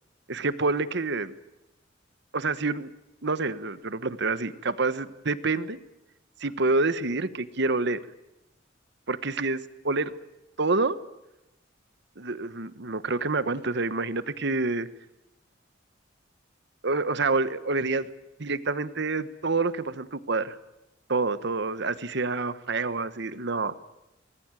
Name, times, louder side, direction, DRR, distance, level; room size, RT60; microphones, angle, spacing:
voice 1, 0.3-1.3 2.3-2.9 3.2-5.8 6.4-8.0 9.1-10.1 10.6-11.0 12.2-14.9 16.8-18.1 18.4-20.6 21.1-23.8, right 3 dB, 60° right, 14 dB, 1.3 m, -27 dB
25.5 x 20.0 x 9.1 m, 0.91 s
head